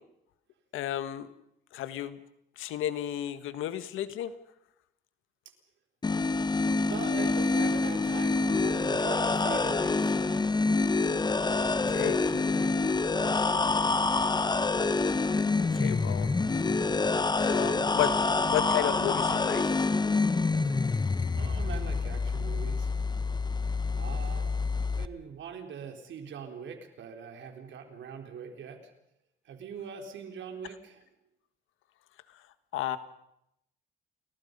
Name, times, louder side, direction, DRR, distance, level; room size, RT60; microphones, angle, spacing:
voice 1, 0.7-1.3 1.7-2.2 2.6-4.3 11.9-12.2 15.7-16.4 17.4-18.1 18.5-19.9 32.3-32.4 32.7-33.0, left 12 dB, 90° left, 12 dB, 1.5 m, -32 dB
sound 1, 6.0-25.1, left 3 dB, 20° left, 1.1 m, -27 dB
voice 2, 6.9-10.4 11.8-12.8 17.5-18.4 21.3-22.9 23.9-28.9 29.4-31.0, right 6 dB, 70° right, 5 dB, 4.2 m, -42 dB
29.5 x 21.5 x 5.4 m, 0.81 s
cardioid pair, 90°, 20 cm